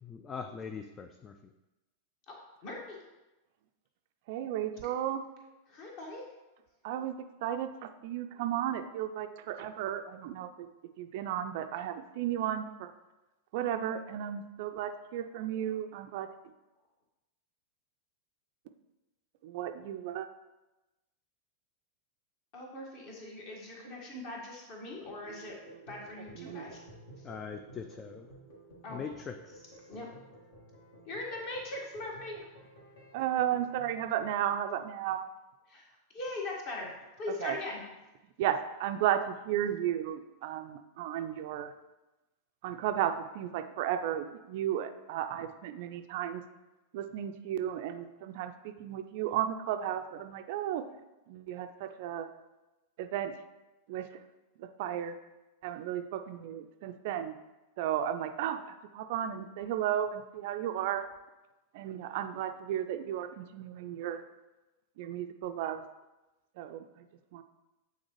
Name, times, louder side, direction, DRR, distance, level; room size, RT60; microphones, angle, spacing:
voice 1, 0.0-1.4 27.2-28.3 28.9-29.8, left 6 dB, 20° left, 7 dB, 0.4 m, -42 dB
voice 2, 2.6-3.0 5.7-6.2 22.5-25.5 25.9-26.8 27.2-27.3 28.8-29.0 29.9-30.1 31.0-32.5 35.7-36.9 37.2-37.8, left 2 dB, 45° left, -2 dB, 1.6 m, -40 dB
voice 3, 4.3-5.2 6.8-7.1 7.4-10.7 11.0-12.9 13.5-16.3 19.4-20.3 26.4-26.6 33.1-35.2 37.4-37.6 38.4-41.7 42.6-46.4 46.9-50.8 51.3-52.3 53.0-53.3 53.9-54.2 54.6-55.2 55.6-57.3 57.8-61.0 61.7-64.2 65.0-65.8 66.6-67.1 67.3-67.4, right 10 dB, 50° right, 8 dB, 0.4 m, -34 dB
sound 1, 24.9-34.3, right 1 dB, 60° left, 1.7 m, -54 dB
8.5 x 3.9 x 3.1 m, 1.0 s
figure-of-eight pair, 90°, 0 cm